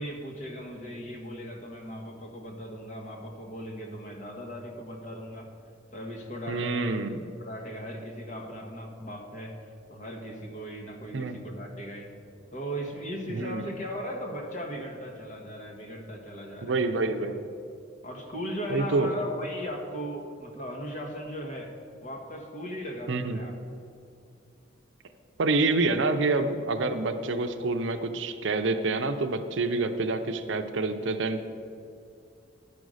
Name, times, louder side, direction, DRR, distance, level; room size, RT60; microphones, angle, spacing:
voice 1, 0.0-5.5 5.9-7.0 7.4-12.1 12.5-16.7 18.0-21.7 22.0-23.5, equal, 40° left, 2 dB, 1.2 m, -38 dB
voice 2, 6.5-7.2 11.1-11.4 13.3-13.7 16.6-17.4 18.7-19.1 23.1-23.4 25.4-31.4, right 3 dB, 70° right, 8 dB, 0.6 m, -27 dB
10.5 x 5.3 x 6.3 m, 2.4 s
head